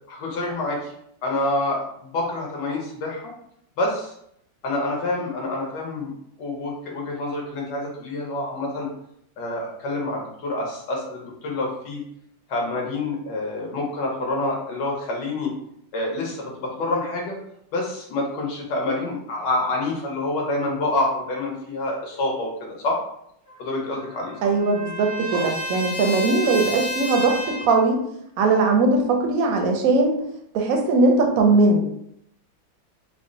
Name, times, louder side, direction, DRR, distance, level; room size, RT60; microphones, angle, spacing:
voice 1, 0.1-0.9 1.2-3.3 3.8-4.1 4.6-6.1 6.4-8.9 9.4-12.0 12.5-15.5 15.9-17.4 17.7-23.0 23.6-24.3 25.3-25.5, left 2 dB, 70° left, -1 dB, 1.5 m, -27 dB
Trumpet, 23.5-27.9, equal, 50° left, 1.3 m, -31 dB
voice 2, 24.4-28.0 28.4-30.2 30.5-31.9, right 3 dB, 70° right, 3 dB, 0.8 m, -20 dB
3.6 x 2.0 x 3.7 m, 0.74 s
omnidirectional pair, 2.0 m